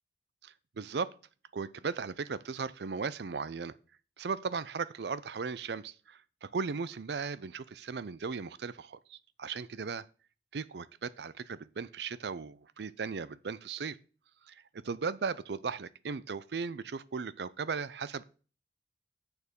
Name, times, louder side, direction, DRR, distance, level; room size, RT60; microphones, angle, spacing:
voice 1, 0.4-1.1 1.5-3.7 4.2-10.1 10.5-14.0 14.5-18.2, right 5 dB, 65° right, 0.5 m, -37 dB
7.0 x 6.6 x 5.3 m
head